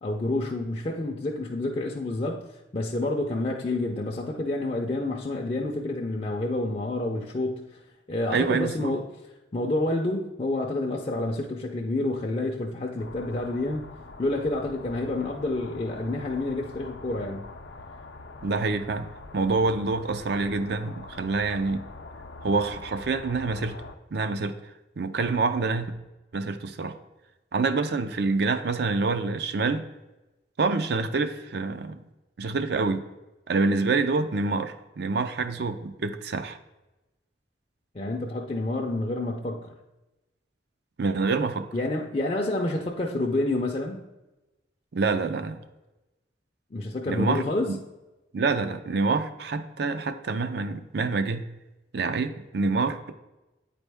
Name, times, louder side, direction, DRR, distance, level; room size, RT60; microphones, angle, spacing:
voice 1, 0.0-7.8 8.1-9.1 9.5-13.9 14.2-17.5 37.9-39.7 41.7-44.0 46.7-47.7, left 2 dB, 35° left, 0.5 m, -28 dB
voice 2, 8.3-8.9 18.4-19.1 19.3-21.8 22.4-23.8 24.1-24.6 25.0-25.9 26.3-27.0 27.5-29.9 30.6-32.0 32.4-33.0 33.5-36.6 41.0-41.7 44.9-45.6 47.1-47.8 48.3-51.4 51.9-53.1, right 3 dB, 65° right, 0.5 m, -26 dB
sound 1, 13.0-24.0, left 3 dB, 80° left, 0.5 m, -44 dB
9.2 x 4.2 x 3.4 m
head